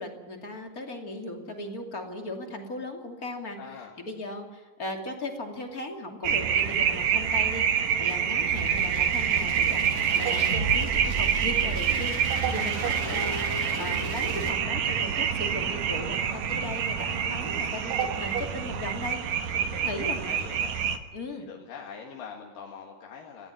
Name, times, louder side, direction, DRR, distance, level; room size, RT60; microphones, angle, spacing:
voice 1, 0.0-19.4 19.8-20.2 21.1-21.5, left 1 dB, 30° left, 3 dB, 2.8 m, -37 dB
voice 2, 3.6-3.9 16.0-16.3 19.5-20.8 21.5-23.5, left 6 dB, 85° left, 0 dB, 3.4 m, -43 dB
sound 1, 6.2-21.0, right 8 dB, 65° right, 2.4 m, -27 dB
sound 2, 8.5-14.5, right 2 dB, 20° right, 6.4 m, -34 dB
18.5 x 15.0 x 9.8 m, 1.3 s
omnidirectional pair, 3.8 m